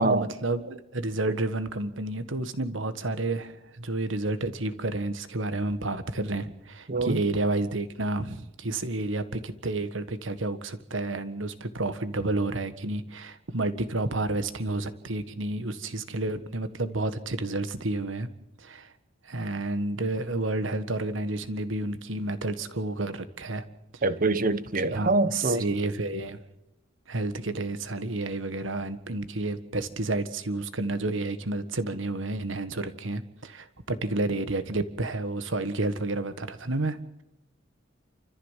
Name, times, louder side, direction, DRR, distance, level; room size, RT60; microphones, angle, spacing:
voice 1, 0.0-18.3 18.6-18.9 19.2-23.6 23.9-24.0 24.8-26.4 27.1-37.2, right 2 dB, 75° right, 1.6 m, -30 dB
voice 2, 6.9-7.2 24.0-25.6, right 2 dB, 45° right, 1.1 m, -24 dB
29.0 x 14.5 x 7.5 m
head